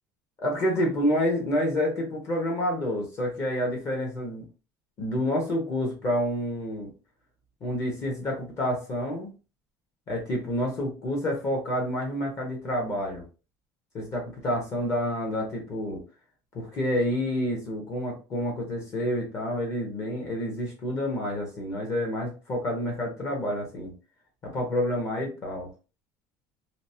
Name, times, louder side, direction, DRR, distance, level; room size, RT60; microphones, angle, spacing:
voice 1, 0.4-4.4 5.0-6.9 7.6-9.3 10.1-13.2 13.9-16.0 16.5-23.9 24.4-25.7, equal, 35° left, 0 dB, 0.9 m, -28 dB
2.8 x 2.0 x 2.6 m, 0.32 s
cardioid pair, 160°, 8 cm